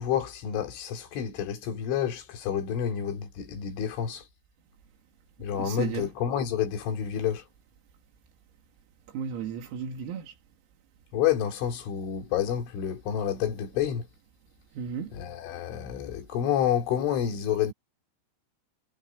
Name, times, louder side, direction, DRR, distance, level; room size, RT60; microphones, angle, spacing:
voice 1, 0.0-4.2 5.4-7.4 11.1-14.1 15.1-17.7, left 9 dB, 65° left, 5.2 m, -29 dB
voice 2, 5.6-6.1 9.1-10.3 14.8-15.1, right 7 dB, 85° right, 5.5 m, -34 dB
omnidirectional pair, 6.0 m